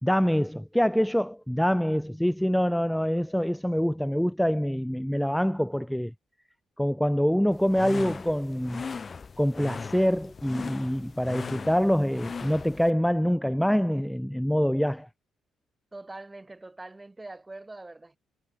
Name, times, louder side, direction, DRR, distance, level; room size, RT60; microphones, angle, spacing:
voice 1, 0.0-6.1 6.8-8.8 9.4-15.1, equal, ahead, 1.2 m, -25 dB
sound 1, 7.5-12.9, left 5 dB, 35° left, 0.9 m, -39 dB
voice 2, 15.9-18.2, right 2 dB, 15° right, 6.6 m, -43 dB
cardioid pair, 90°, 0 cm